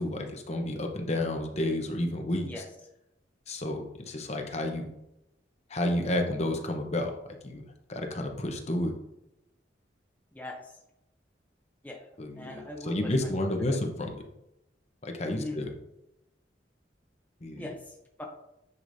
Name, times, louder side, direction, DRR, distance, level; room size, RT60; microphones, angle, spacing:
voice 1, 0.0-2.5 3.5-4.9 5.7-7.1 7.4-7.6 7.9-8.9 12.2-14.1 15.0-15.7 17.4-17.7, left 1 dB, 40° left, 3 dB, 0.9 m, -31 dB
voice 2, 10.3-10.8 11.8-12.1 12.3-13.3 13.6-13.8 15.3-15.6 17.5-18.3, left 1 dB, 10° left, 1 dB, 0.7 m, -41 dB
9.7 x 5.0 x 2.7 m, 0.87 s
head